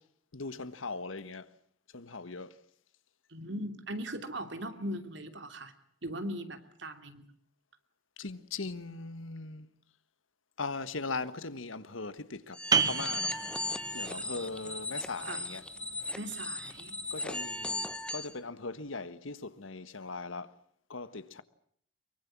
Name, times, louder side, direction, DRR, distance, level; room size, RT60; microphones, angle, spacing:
voice 1, 0.3-1.5 1.9-2.6 8.2-9.7 10.6-13.4 13.9-15.6 17.1-20.5 20.9-21.4, left 3 dB, 90° left, 1.5 m, -39 dB
voice 2, 3.3-5.7 6.0-7.3 15.3-15.4 16.1-17.0, right 1 dB, 65° right, 2.8 m, -39 dB
sound 1, 12.5-18.3, left 2 dB, 5° left, 1.2 m, -37 dB
sound 2, 12.7-18.1, right 5 dB, 20° right, 1.0 m, -35 dB
24.0 x 23.5 x 7.5 m
head